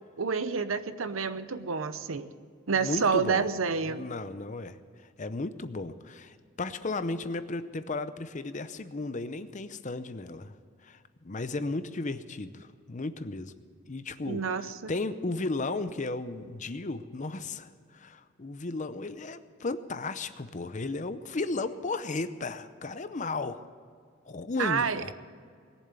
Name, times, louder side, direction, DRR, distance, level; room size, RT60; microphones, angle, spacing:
voice 1, 0.2-2.3 2.7-4.0 14.3-14.9 24.6-25.0, right 5 dB, 80° right, 12 dB, 0.8 m, -29 dB
voice 2, 2.7-3.5 3.8-4.8 5.2-10.5 10.8-13.5 13.9-14.6 14.9-23.6 24.3-25.1, left 3 dB, 35° left, 12 dB, 0.7 m, -34 dB
20.0 x 7.2 x 9.5 m, 2.1 s
head